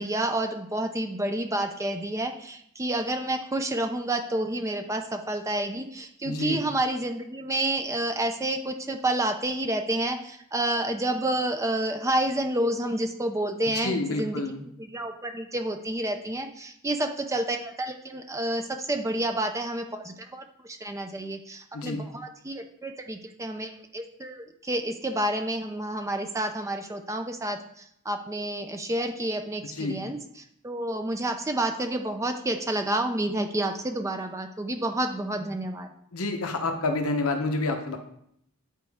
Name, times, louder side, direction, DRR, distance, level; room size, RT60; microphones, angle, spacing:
voice 1, 0.0-14.4 14.8-35.9, right 1 dB, 15° right, 5 dB, 0.4 m, -29 dB
voice 2, 6.3-6.6 13.7-14.6 21.7-22.0 29.8-30.0 36.1-38.0, left 2 dB, 70° left, 5 dB, 1.0 m, -28 dB
10.0 x 4.4 x 3.6 m, 0.72 s
head